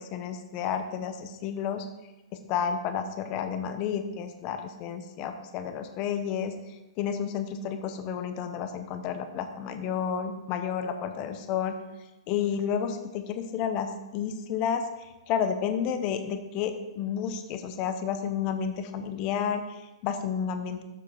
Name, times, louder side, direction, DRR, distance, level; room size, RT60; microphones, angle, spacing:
voice 1, 0.0-1.9 2.5-6.5 7.0-11.8 12.3-20.8, left 7 dB, 30° left, 7 dB, 0.7 m, -31 dB
6.8 x 5.9 x 4.9 m, 1.0 s
hypercardioid pair, 160°, 3 cm